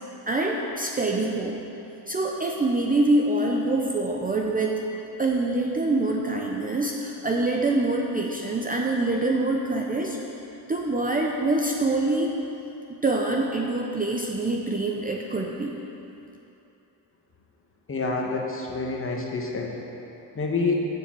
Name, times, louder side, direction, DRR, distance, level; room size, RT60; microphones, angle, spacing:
voice 1, 0.3-1.6 2.1-4.8 5.2-10.2 10.7-12.3 12.9-15.8, right 2 dB, 20° right, -1 dB, 0.6 m, -25 dB
voice 2, 17.9-19.8 20.3-20.7, left 3 dB, 30° left, 0 dB, 1.2 m, -27 dB
7.4 x 6.6 x 7.5 m, 2.9 s
cardioid pair, 135°, 43 cm